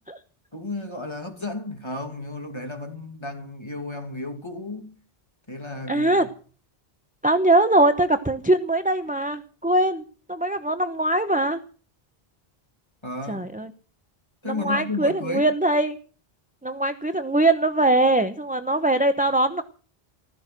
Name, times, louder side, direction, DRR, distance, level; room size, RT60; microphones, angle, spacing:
voice 1, 0.5-4.9 5.5-6.2 13.0-13.5 14.4-15.5, left 2 dB, 25° left, 2.6 m, -33 dB
voice 2, 5.9-6.3 7.2-11.6 13.3-13.7 14.4-16.0 16.6-19.6, right 1 dB, 10° right, 0.8 m, -22 dB
15.5 x 14.5 x 6.0 m
omnidirectional pair, 1.0 m